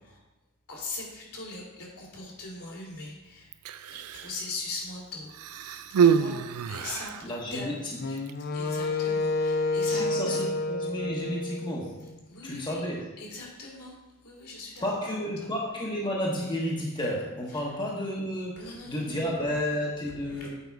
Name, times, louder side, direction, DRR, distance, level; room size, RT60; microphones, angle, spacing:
voice 1, 0.7-3.5 3.9-6.4 6.7-7.7 8.5-10.4 12.3-12.8 13.2-13.9 14.2-14.9 15.4-15.5 18.6-19.2 20.2-20.5, left 3 dB, 75° left, -3 dB, 2.7 m, -40 dB
Human voice, 3.5-4.4 5.3-7.3 8.2-8.3, right 7 dB, 75° right, 0.4 m, -26 dB
voice 2, 7.2-8.2 9.9-12.0 12.4-13.1 14.8-20.5, left 1 dB, 20° left, -3 dB, 1.0 m, -32 dB
Wind instrument woodwind instrument, 8.0-12.2, left 2 dB, 45° left, 0.6 m, -29 dB
8.2 x 5.1 x 4.6 m, 1.0 s
head